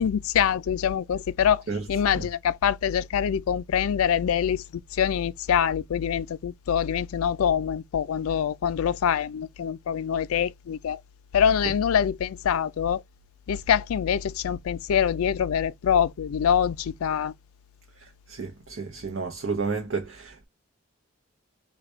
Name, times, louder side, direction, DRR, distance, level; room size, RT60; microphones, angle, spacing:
voice 1, 0.0-1.6 1.9-11.0 11.3-13.0 13.5-17.3, left 8 dB, 80° left, 0.4 m, -25 dB
voice 2, 18.3-20.5, right 4 dB, 60° right, 0.7 m, -31 dB
3.9 x 2.2 x 4.4 m
head